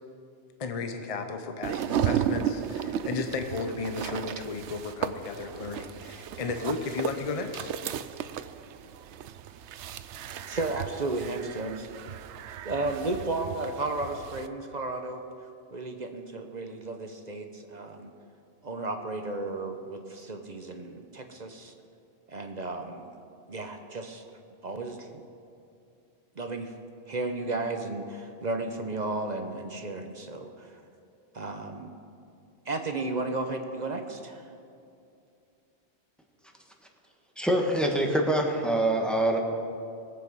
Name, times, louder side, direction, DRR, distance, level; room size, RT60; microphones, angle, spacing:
voice 1, 0.6-7.7, left 4 dB, 35° left, 6 dB, 0.8 m, -34 dB
sound 1, 1.6-14.5, right 9 dB, 90° right, 0.9 m, -34 dB
voice 2, 10.5-11.9 12.6-15.2 15.7-18.1 18.6-21.7 22.3-23.1 23.5-24.2 24.6-25.1 26.4-26.7 27.1-30.7 31.3-31.9 32.7-34.5, right 2 dB, 45° right, 6 dB, 0.9 m, -33 dB
voice 3, 37.4-39.4, right 1 dB, ahead, 1 dB, 1.4 m, -25 dB
21.5 x 7.9 x 5.4 m, 2.5 s
omnidirectional pair, 1.1 m